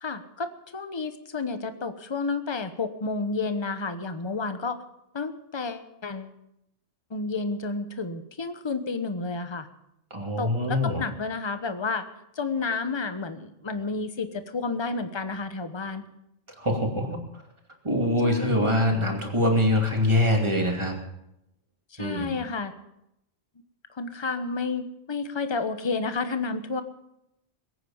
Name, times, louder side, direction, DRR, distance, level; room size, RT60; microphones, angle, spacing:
voice 1, 0.0-4.8 5.1-6.3 7.1-9.7 10.4-12.0 12.4-16.1 18.2-18.8 21.9-22.7 23.9-26.8, left 4 dB, 25° left, 9 dB, 1.0 m, -31 dB
voice 2, 10.1-11.0 16.6-17.2 17.8-21.0 22.0-22.3, left 1 dB, 25° right, 2 dB, 2.7 m, -24 dB
22.0 x 9.2 x 7.1 m, 0.82 s
omnidirectional pair, 1.3 m